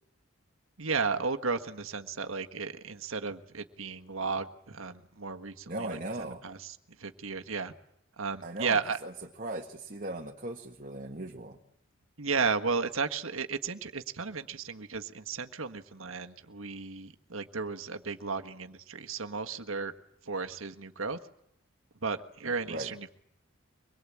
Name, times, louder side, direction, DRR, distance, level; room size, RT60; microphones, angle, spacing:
voice 1, 0.8-6.0 6.4-7.7 8.2-9.0 12.2-19.9 20.2-21.2 22.0-23.1, right 4 dB, 75° right, 7 dB, 1.6 m, -34 dB
voice 2, 5.7-6.4 8.4-9.1 9.4-11.6 22.7-22.9, right 1 dB, 40° right, 2 dB, 1.8 m, -38 dB
24.5 x 22.0 x 8.7 m, 0.77 s
head